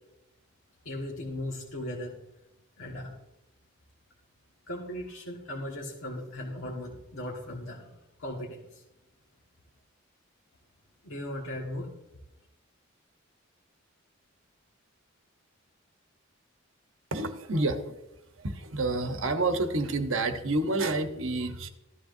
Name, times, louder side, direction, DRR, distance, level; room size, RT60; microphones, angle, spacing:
voice 1, 0.8-2.2 2.8-3.1 4.7-7.9 8.2-8.8 11.0-11.9, left 1 dB, 85° left, -3 dB, 1.7 m, -37 dB
voice 2, 17.1-18.0 18.4-21.7, right 2 dB, 70° right, 7 dB, 1.0 m, -29 dB
14.0 x 12.5 x 2.6 m, 0.90 s
head